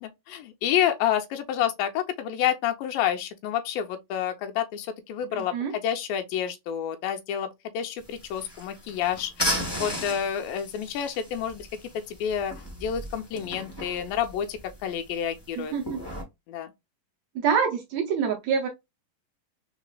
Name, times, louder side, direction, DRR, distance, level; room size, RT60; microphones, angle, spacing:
voice 1, 0.0-11.7 11.9-15.7 16.5-16.7, left 9 dB, 85° left, 2.3 m, -29 dB
voice 2, 5.3-5.7 15.6-16.0 17.3-18.7, right 6 dB, 85° right, 1.5 m, -26 dB
sound 1, 8.0-16.2, equal, 35° left, 0.4 m, -36 dB
4.9 x 4.0 x 2.2 m
omnidirectional pair, 4.2 m